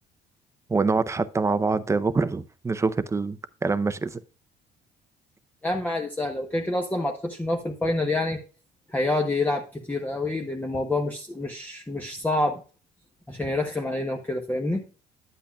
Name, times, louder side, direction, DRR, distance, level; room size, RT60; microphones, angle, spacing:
voice 1, 0.7-4.2, right 4 dB, 15° right, 0.6 m, -25 dB
voice 2, 5.6-8.4 8.9-12.6 13.3-14.9, left 2 dB, 10° left, 0.9 m, -27 dB
10.0 x 8.0 x 2.3 m
cardioid pair, 110°, 17 cm